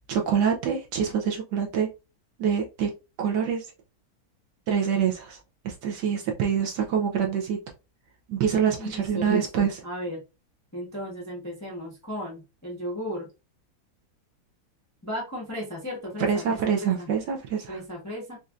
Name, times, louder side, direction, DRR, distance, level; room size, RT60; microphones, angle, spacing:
voice 1, 0.1-1.9 2.4-2.9 3.2-3.7 4.7-7.6 8.3-9.8 16.2-17.8, right 7 dB, 70° right, 1 dB, 1.1 m, -25 dB
voice 2, 8.8-10.2 10.7-13.3 15.0-17.1 17.7-18.4, equal, 20° left, -3 dB, 0.5 m, -35 dB
4.3 x 2.5 x 2.4 m, 0.28 s
omnidirectional pair, 2.2 m